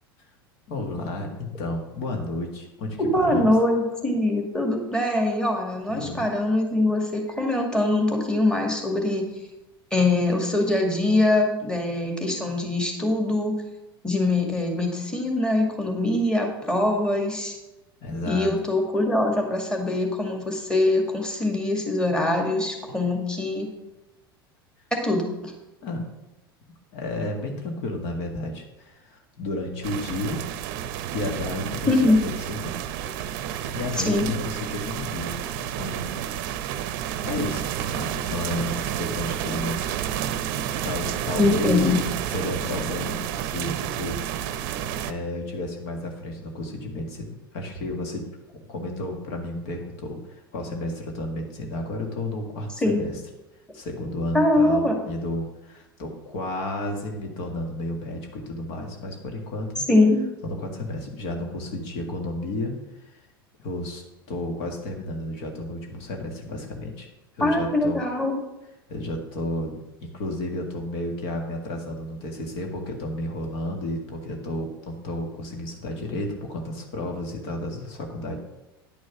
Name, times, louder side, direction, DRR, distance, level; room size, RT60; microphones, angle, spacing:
voice 1, 0.7-3.5 5.9-6.3 18.0-18.5 25.8-26.1 26.9-30.4 31.1-32.7 33.7-36.2 37.2-39.9 40.8-41.8 42.3-44.2 45.0-48.3 48.7-53.2 53.7-59.8 60.4-63.2 63.6-64.0 64.3-67.1 67.4-68.0 68.9-78.4, left 1 dB, 55° left, 2 dB, 1.9 m, -32 dB
voice 2, 3.1-9.3 9.9-13.5 14.0-17.6 18.3-23.7 24.9-25.5 31.9-32.2 34.1-34.3 41.4-42.0 52.8-53.1 54.3-54.9 59.9-60.2 67.4-68.4, left 2 dB, 5° left, 2 dB, 2.1 m, -23 dB
sound 1, 29.8-45.1, right 10 dB, 55° right, 0.7 m, -30 dB
10.5 x 6.3 x 5.9 m, 0.97 s
figure-of-eight pair, 80°, 12 cm